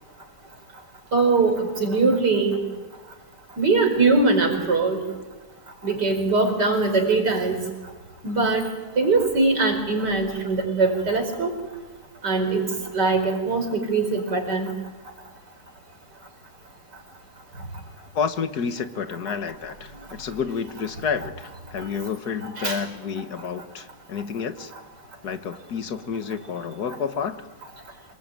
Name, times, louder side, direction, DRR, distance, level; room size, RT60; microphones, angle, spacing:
voice 1, 1.1-2.6 3.6-5.0 5.8-7.6 8.2-8.7 9.0-11.5 12.2-14.7 22.4-22.8, right 3 dB, 80° right, 4 dB, 5.4 m, -22 dB
voice 2, 18.1-24.7 25.2-27.4, left 6 dB, 70° left, 10 dB, 1.9 m, -30 dB
27.0 x 20.5 x 9.2 m, 1.3 s
omnidirectional pair, 1.8 m